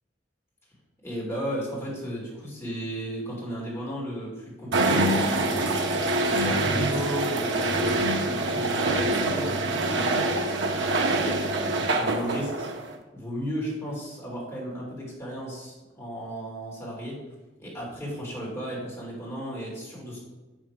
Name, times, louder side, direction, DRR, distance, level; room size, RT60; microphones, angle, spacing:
voice 1, 1.0-5.7 6.3-10.2 11.0-12.7 13.1-17.2 17.6-20.2, equal, 15° left, -5 dB, 3.1 m, -34 dB
sound 1, 4.7-12.9, right 2 dB, 70° right, 0.9 m, -25 dB
7.5 x 6.3 x 4.9 m, 1.2 s
head